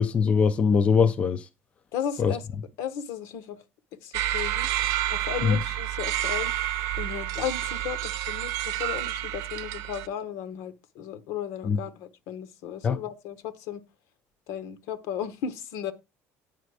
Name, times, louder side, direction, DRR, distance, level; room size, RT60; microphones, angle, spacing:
voice 1, 0.0-1.5 2.2-2.4 5.4-5.6 11.6-11.8 12.8-13.0, left 6 dB, 20° left, 0.4 m, -22 dB
voice 2, 1.9-2.4 2.8-3.6 4.0-4.7 5.1-6.5 7.0-13.8 14.5-15.9, left 9 dB, 70° left, 1.0 m, -35 dB
sound 1, 4.1-10.1, right 13 dB, 70° right, 0.7 m, -29 dB
9.3 x 5.1 x 4.8 m
cardioid pair, 180°, 6 cm